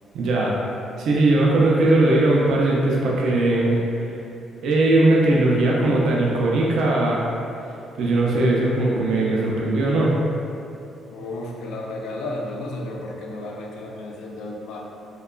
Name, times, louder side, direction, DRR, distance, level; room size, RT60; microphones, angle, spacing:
voice 1, 0.1-0.6 1.0-3.8 4.6-7.3 8.0-10.2, right 2 dB, 65° right, -3 dB, 0.3 m, -19 dB
voice 2, 11.1-14.8, left 2 dB, 80° left, -1 dB, 0.3 m, -33 dB
2.8 x 2.2 x 2.3 m, 2.7 s
cardioid pair, 165°, 0 cm